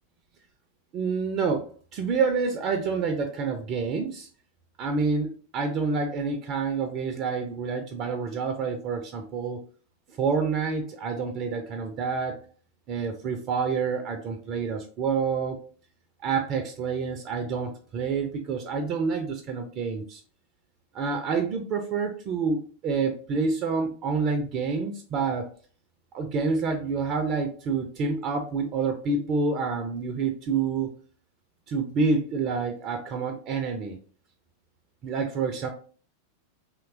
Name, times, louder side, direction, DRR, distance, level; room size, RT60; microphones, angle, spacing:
voice 1, 0.9-4.3 4.8-9.6 10.2-12.4 12.9-15.6 16.2-20.2 20.9-25.5 26.1-30.9 31.7-34.0 35.0-35.7, right 5 dB, 35° right, 5 dB, 0.3 m, -28 dB
2.8 x 2.1 x 2.5 m, 0.41 s
figure-of-eight pair, 90°, 0 cm